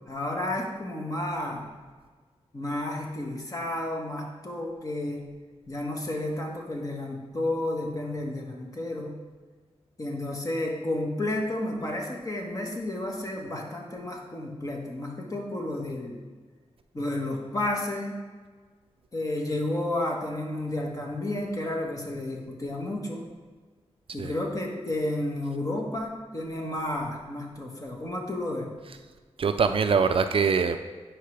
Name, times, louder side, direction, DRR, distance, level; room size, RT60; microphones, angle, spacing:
voice 1, 0.1-1.7 2.5-5.3 5.7-9.2 10.0-16.2 16.9-18.2 19.1-23.3 24.1-28.7, left 1 dB, 30° left, 0 dB, 1.4 m, -31 dB
voice 2, 29.4-30.8, right 5 dB, 55° right, 8 dB, 0.4 m, -23 dB
10.0 x 4.7 x 3.3 m, 1.4 s
wide cardioid pair, 85°, 11 cm